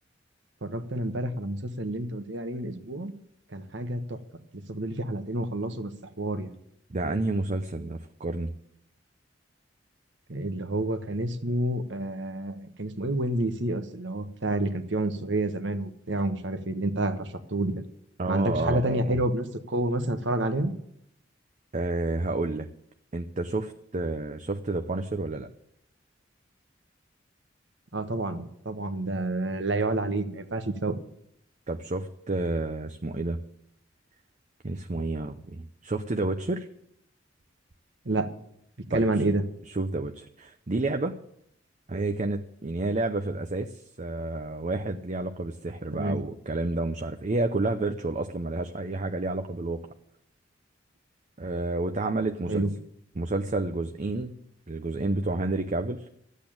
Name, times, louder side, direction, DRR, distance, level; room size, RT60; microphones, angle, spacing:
voice 1, 0.6-3.1 3.5-4.2 4.7-5.9 6.2-6.5 10.3-17.7 18.3-20.7 27.9-31.0 38.0-38.3 38.9-39.4 45.9-46.2 52.5-52.7, right 1 dB, 70° right, 9 dB, 1.3 m, -29 dB
voice 2, 6.9-8.5 18.2-19.2 21.7-22.7 23.1-25.5 31.7-33.4 34.6-36.7 38.9-39.2 39.7-41.2 41.9-49.8 51.4-52.6 53.2-54.4 54.7-56.1, right 2 dB, 40° right, 6 dB, 0.7 m, -30 dB
12.5 x 8.4 x 8.7 m, 0.75 s
head